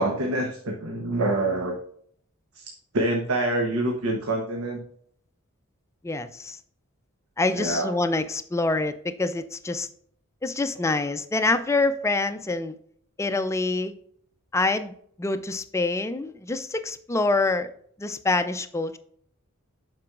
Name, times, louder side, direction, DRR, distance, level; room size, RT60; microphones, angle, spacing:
voice 1, 0.0-1.8 2.5-2.6 2.9-4.8 7.5-7.9, right 1 dB, 75° right, 1 dB, 1.0 m, -26 dB
voice 2, 6.0-6.6 7.4-9.9 10.4-12.8 13.2-13.9 14.5-17.7 18.0-19.0, left 3 dB, 15° left, 10 dB, 0.4 m, -26 dB
7.5 x 6.1 x 2.4 m, 0.63 s
head